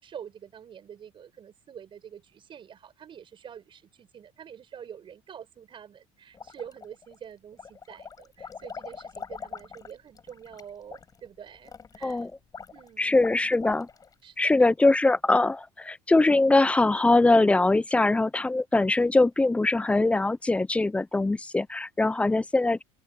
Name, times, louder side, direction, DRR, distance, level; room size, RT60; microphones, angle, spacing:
voice 1, 0.0-12.3 12.7-13.5 14.2-14.7, right 8 dB, 40° right, 6.2 m, -46 dB
sound 1, 6.3-7.1 7.5-14.2, left 6 dB, 25° left, 6.8 m, -43 dB
voice 2, 13.0-13.9 14.4-22.8, left 2 dB, 10° left, 0.6 m, -22 dB
open air
supercardioid pair, 115°, 14 cm